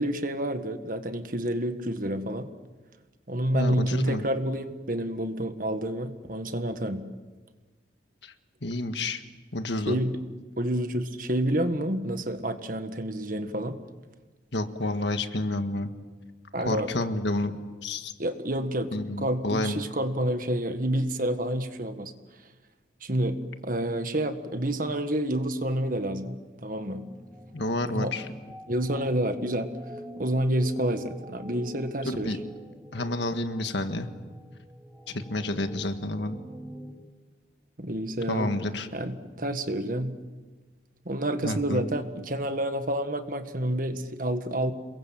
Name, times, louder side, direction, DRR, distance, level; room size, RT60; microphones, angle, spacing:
voice 1, 0.0-2.5 3.3-7.0 9.9-10.2 10.6-13.8 16.5-16.9 18.2-18.9 19.2-22.1 23.0-23.4 23.6-27.0 27.9-28.1 28.7-29.7 30.2-32.3 37.8-38.5 38.9-40.1 41.0-44.7, right 1 dB, 45° right, 8 dB, 1.6 m, -29 dB
voice 2, 3.5-4.3 8.2-8.3 8.6-9.2 9.5-10.0 14.5-15.9 16.6-17.6 17.8-18.1 18.9-19.8 27.5-28.3 32.1-32.4 32.9-34.1 35.1-36.4 38.3-38.9 41.4-41.9, left 2 dB, 65° left, 8 dB, 1.7 m, -29 dB
sound 1, 26.7-36.9, equal, 15° right, 2.9 m, -46 dB
28.5 x 22.5 x 7.7 m, 1.3 s
head